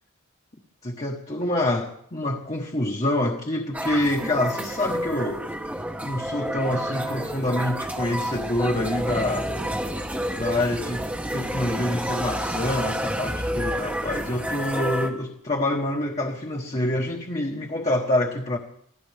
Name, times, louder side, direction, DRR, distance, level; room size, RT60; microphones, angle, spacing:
voice 1, 0.8-5.5 6.0-9.5 10.3-18.6, left 1 dB, 30° left, -1 dB, 1.3 m, -26 dB
sound 1, 3.7-15.1, equal, 5° right, 1.0 m, -29 dB
24.5 x 16.0 x 3.5 m, 0.67 s
head